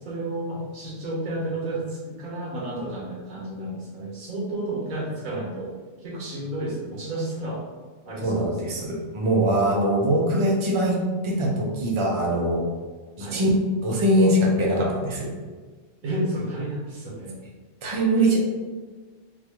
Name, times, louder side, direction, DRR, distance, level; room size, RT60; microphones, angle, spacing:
voice 1, 0.0-7.6 8.0-8.9 13.2-13.4 16.0-17.3 18.1-18.3, right 1 dB, 75° right, -4 dB, 1.4 m, -32 dB
voice 2, 8.2-11.0 11.2-12.6 13.2-13.5 13.8-15.4 17.8-18.4, right 1 dB, 45° right, -2 dB, 0.3 m, -22 dB
3.9 x 2.3 x 3.0 m, 1.4 s
omnidirectional pair, 1.4 m